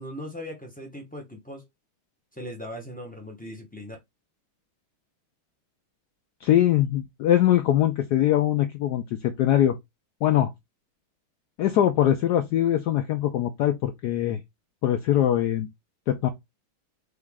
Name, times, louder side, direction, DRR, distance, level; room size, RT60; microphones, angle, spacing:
voice 1, 0.0-1.6 2.3-4.0, equal, 15° left, 0.3 m, -39 dB
voice 2, 6.4-9.8 10.2-10.5 11.6-14.4 14.8-15.7 16.1-16.3, left 12 dB, 80° left, 0.9 m, -22 dB
3.9 x 3.3 x 3.5 m
omnidirectional pair, 2.3 m